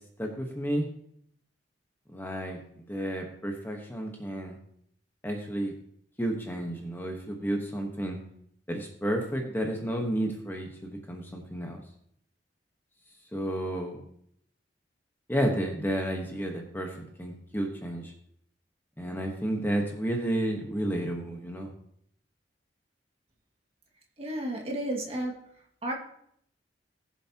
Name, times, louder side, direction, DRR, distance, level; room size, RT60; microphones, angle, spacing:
voice 1, 0.2-0.9 2.1-2.6 2.9-4.6 5.2-5.7 6.2-8.2 8.7-11.8 13.3-14.0 15.3-18.1 19.0-21.7, right 1 dB, 10° left, 1 dB, 1.2 m, -31 dB
voice 2, 24.2-25.3 25.8-25.9, right 1 dB, 35° right, 0 dB, 2.0 m, -32 dB
19.5 x 7.2 x 2.9 m, 0.69 s
head